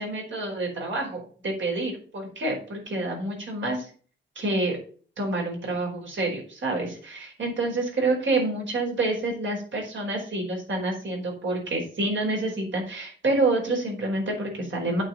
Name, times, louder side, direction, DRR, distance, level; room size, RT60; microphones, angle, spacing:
voice 1, 0.0-3.9 4.3-4.8 5.2-15.0, right 2 dB, 70° right, 0 dB, 4.8 m, -28 dB
8.7 x 5.1 x 7.8 m, 0.43 s
wide cardioid pair, 120°, 20 cm